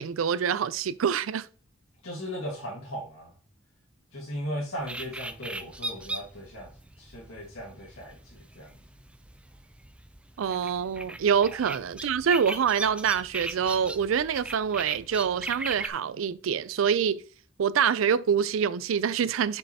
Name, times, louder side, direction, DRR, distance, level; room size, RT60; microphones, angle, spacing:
voice 1, 0.0-1.5 10.4-17.2 17.6-19.6, right 7 dB, 85° right, 0.4 m, -26 dB
voice 2, 2.0-3.3 4.1-6.7 7.0-8.7 11.4-11.6, equal, 90° left, 1.8 m, -37 dB
sound 1, 4.8-15.9, right 2 dB, 5° right, 0.3 m, -39 dB
7.2 x 5.4 x 2.8 m
head